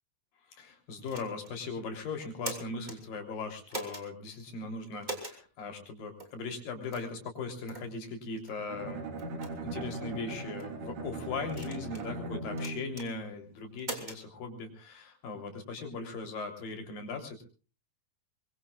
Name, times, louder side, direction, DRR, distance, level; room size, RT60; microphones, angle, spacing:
voice 1, 0.5-9.1 9.6-17.4, left 4 dB, 75° left, 4 dB, 5.1 m, -39 dB
sound 1, 1.1-1.6 2.2-3.0 3.7-4.1 5.0-5.4 6.2-6.3 6.9-7.1 7.7-7.9 8.5-8.6 9.2-9.5 10.3-10.7 11.5-12.1 12.6-13.1 13.8-14.2, right 1 dB, 15° right, 2.9 m, -41 dB
Bowed string instrument, 8.7-13.1, right 2 dB, 55° right, 3.1 m, -39 dB
24.0 x 22.5 x 2.4 m, 0.36 s
omnidirectional pair, 4.0 m